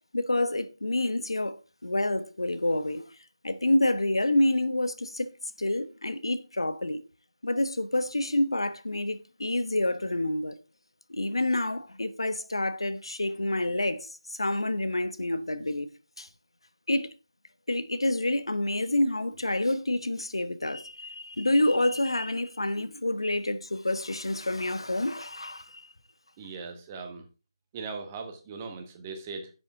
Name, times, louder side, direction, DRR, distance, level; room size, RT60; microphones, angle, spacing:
voice 1, 0.1-1.6 1.8-3.0 3.4-5.3 5.6-7.0 7.4-10.5 11.1-15.9 16.2-16.3 16.9-17.1 17.7-25.9, left 1 dB, 75° left, 1.2 m, -28 dB
voice 2, 26.4-27.2 27.7-29.5, right 4 dB, 20° right, 1.4 m, -39 dB
10.0 x 7.6 x 3.7 m
figure-of-eight pair, 160°, 3 cm